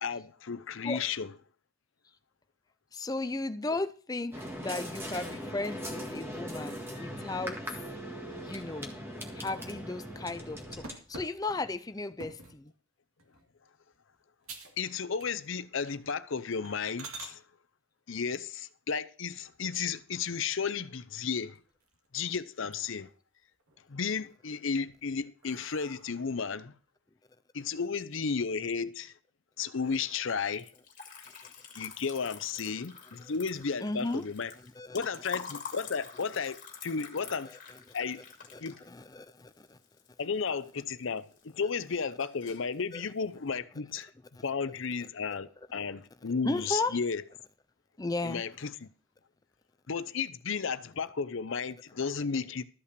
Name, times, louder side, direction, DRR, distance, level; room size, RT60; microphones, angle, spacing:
voice 1, 0.0-1.3 14.8-17.4 18.1-21.6 22.1-23.1 23.9-26.7 27.5-29.1 29.6-30.7 31.8-34.5 34.9-36.6 36.8-37.5 37.9-38.2 38.6-38.8 40.2-44.1 44.4-47.2 48.2-48.9 49.9-52.6, left 5 dB, 65° left, 0.6 m, -33 dB
voice 2, 2.9-7.8 8.3-9.0 9.3-12.7 31.4-31.5 33.2-33.3 33.8-34.3 34.6-35.1 37.4-37.8 38.5-39.8 42.9-43.0 44.3-44.4 45.0-45.1 46.4-47.0 48.0-48.4, left 2 dB, 15° left, 0.5 m, -35 dB
sound 1, 4.3-10.9, equal, 10° right, 1.7 m, -40 dB
sound 2, 10.8-12.6 13.2-13.5 13.9-14.0 14.4-14.8 15.1-15.6 16.0-16.1 16.6-17.3 19.4-20.0 20.5-20.6 21.0-21.1 21.4-22.2 22.5-23.1 23.5-24.2 24.7-26.4, right 3 dB, 80° right, 2.2 m, -48 dB
Liquid, 30.5-40.7 41.0-41.7 41.9-42.7, left 6 dB, 40° left, 2.3 m, -46 dB
13.0 x 5.6 x 6.7 m
head